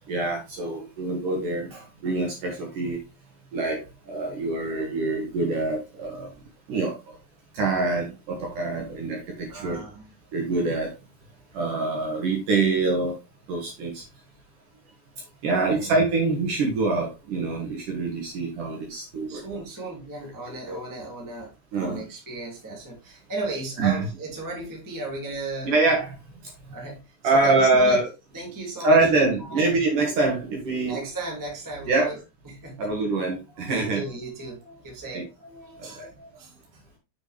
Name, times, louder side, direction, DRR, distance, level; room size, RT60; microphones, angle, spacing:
voice 1, 0.1-3.0 3.5-6.3 6.7-7.0 7.5-9.8 10.3-10.9 11.5-13.2 13.5-14.0 15.4-19.6 20.2-20.8 21.7-22.0 23.8-24.1 25.6-26.2 27.2-28.0 28.8-31.0 31.8-32.1 32.8-34.0 35.1-35.2 35.8-36.1, right 3 dB, 60° right, 2.3 m, -25 dB
voice 2, 9.5-10.1 15.6-15.9 19.3-25.7 26.7-28.0 28.3-29.8 30.8-32.2 32.4-32.9 33.5-36.6, right 2 dB, 15° right, 0.7 m, -36 dB
7.3 x 6.4 x 3.2 m
omnidirectional pair, 5.8 m